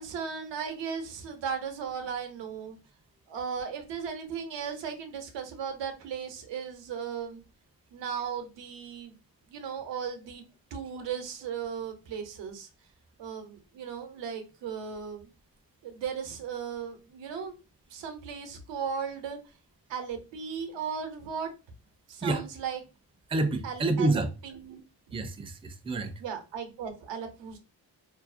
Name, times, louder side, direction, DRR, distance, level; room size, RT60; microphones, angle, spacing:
voice 1, 0.0-2.8 3.3-7.4 7.9-9.2 9.5-10.4 10.7-12.7 13.2-15.3 15.8-17.5 17.9-19.4 19.9-21.5 22.1-22.8 23.6-24.8 25.1-25.2 26.2-27.6, right 7 dB, 90° right, 0.7 m, -36 dB
voice 2, 23.3-24.3 25.1-26.1, right 2 dB, 15° right, 0.4 m, -28 dB
2.5 x 2.0 x 2.4 m
cardioid pair, 60°, 42 cm